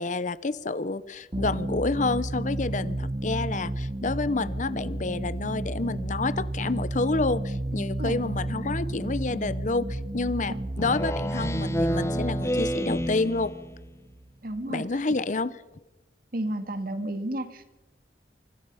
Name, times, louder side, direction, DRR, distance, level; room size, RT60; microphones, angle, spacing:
voice 1, 0.0-13.5 14.7-15.5, left 3 dB, 45° left, 16 dB, 0.8 m, -29 dB
sound 1, 1.3-14.6, right 1 dB, 25° right, 0.7 m, -32 dB
Speech synthesizer, 10.8-13.8, equal, 15° left, 0.9 m, -29 dB
voice 2, 14.4-14.8 16.3-17.6, right 1 dB, 50° right, 9 dB, 2.3 m, -31 dB
25.5 x 25.0 x 5.7 m, 1.0 s
head